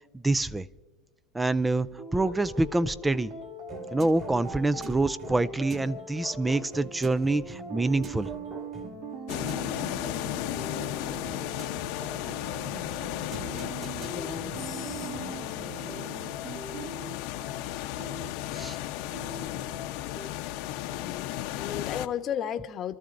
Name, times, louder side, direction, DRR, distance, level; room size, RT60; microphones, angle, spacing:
voice 1, 0.1-0.7 1.3-3.3 3.9-8.3 18.5-18.8, right 2 dB, 10° right, 17 dB, 0.4 m, -26 dB
sound 1, 2.0-20.3, right 2 dB, 60° right, 2.1 m, -41 dB
sound 2, 3.7-15.5, right 3 dB, 35° right, 2.7 m, -45 dB
sound 3, 9.3-22.1, left 14 dB, 65° left, 0.8 m, -34 dB
voice 2, 14.0-15.2 20.9-23.0, left 9 dB, 35° left, 8 dB, 1.0 m, -35 dB
28.5 x 14.0 x 2.6 m, 1.3 s
supercardioid pair, 125°, 0 cm